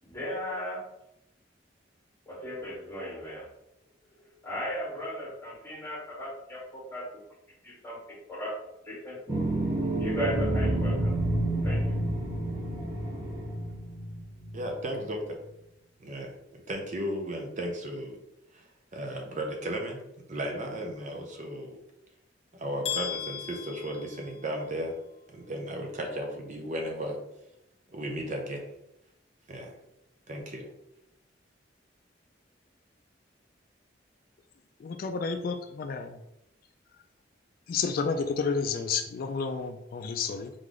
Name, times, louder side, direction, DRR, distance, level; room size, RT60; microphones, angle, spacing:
voice 1, 0.0-0.8 2.3-3.5 4.4-7.0 7.6-8.5 8.8-9.2 10.0-11.1 11.6-12.0, equal, 10° left, -4 dB, 1.4 m, -36 dB
sound 1, 9.3-15.0, right 1 dB, 20° right, 1.0 m, -29 dB
voice 2, 14.5-15.4 16.0-16.4 16.7-18.2 18.5-20.0 20.3-21.8 22.5-25.0 25.3-27.2 27.9-28.6 29.5-29.8 30.3-30.7, equal, 45° right, 2 dB, 0.7 m, -35 dB
sound 2, 22.8-24.8, left 9 dB, 35° left, 0.8 m, -36 dB
voice 3, 34.8-36.2 37.7-40.5, left 5 dB, 50° left, 6 dB, 0.3 m, -31 dB
3.7 x 3.2 x 3.8 m, 0.85 s
head